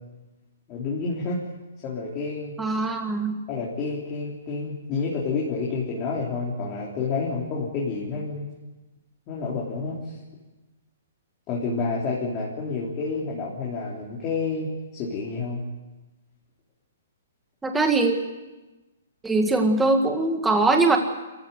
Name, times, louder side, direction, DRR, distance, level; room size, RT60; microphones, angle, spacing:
voice 1, 0.7-1.4 1.8-2.5 3.5-8.5 9.3-10.2 11.5-15.6, left 4 dB, 20° left, -5 dB, 3.6 m, -29 dB
voice 2, 2.6-3.4 17.6-18.2 19.2-21.0, right 3 dB, 5° right, 4 dB, 1.8 m, -21 dB
27.5 x 15.0 x 9.4 m, 1.1 s
hypercardioid pair, 170°, 0 cm